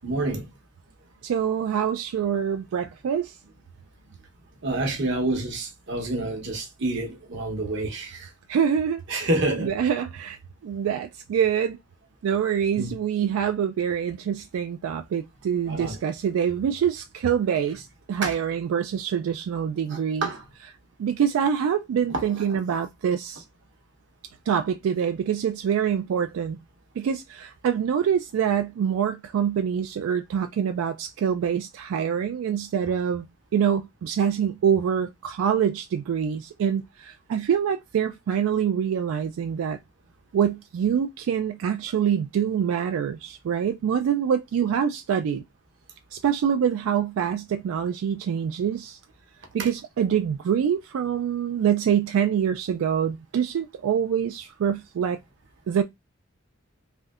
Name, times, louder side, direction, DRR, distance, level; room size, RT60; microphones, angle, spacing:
voice 1, 0.0-0.5 4.6-8.3 9.1-9.7 12.8-12.9 15.7-16.0 18.2-18.3 19.9-20.4 22.1-22.6 49.6-49.7, right 2 dB, 60° right, 0.9 m, -28 dB
voice 2, 1.2-3.4 8.5-9.3 9.6-11.8 12.2-20.3 21.0-23.4 24.5-26.6 27.0-33.3 33.5-39.8 40.3-45.4 46.1-49.0 49.5-55.2 55.7-55.8, right 8 dB, 85° right, 0.3 m, -25 dB
3.3 x 2.6 x 2.3 m
head